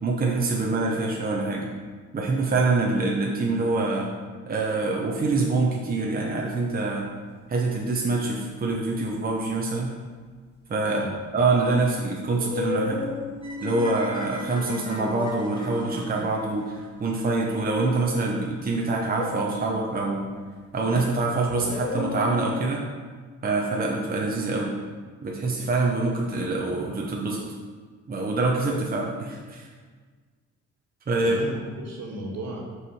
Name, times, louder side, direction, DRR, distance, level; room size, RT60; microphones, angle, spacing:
voice 1, 0.0-1.7 2.1-4.1 4.5-7.1 7.5-9.9 10.7-11.1 11.3-13.1 13.6-20.3 20.7-22.9 23.4-24.8 25.2-27.4 28.1-29.7 31.1-31.4, right 3 dB, 30° right, -1 dB, 0.9 m, -25 dB
sound 1, 6.3-6.7 7.6-8.2 11.2-11.3 12.3-16.3 19.1-20.3 21.5-22.7, left 4 dB, 35° left, 1.0 m, -35 dB
sound 2, 13.4-17.5, equal, 15° left, 1.7 m, -43 dB
voice 2, 31.2-32.6, right 1 dB, 65° right, -2 dB, 1.7 m, -35 dB
5.7 x 4.9 x 4.8 m, 1.5 s
cardioid pair, 90°, 30 cm